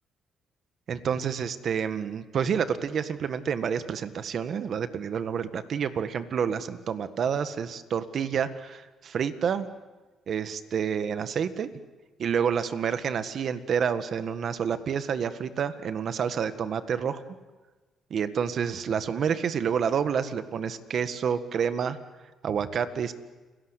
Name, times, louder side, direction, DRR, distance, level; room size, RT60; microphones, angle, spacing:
voice 1, 0.9-9.7 10.3-11.8 12.2-17.2 18.1-22.0 22.4-23.1, right 7 dB, 60° right, 11 dB, 1.7 m, -29 dB
29.5 x 18.0 x 8.2 m, 1.3 s
cardioid pair, 90°, 0 cm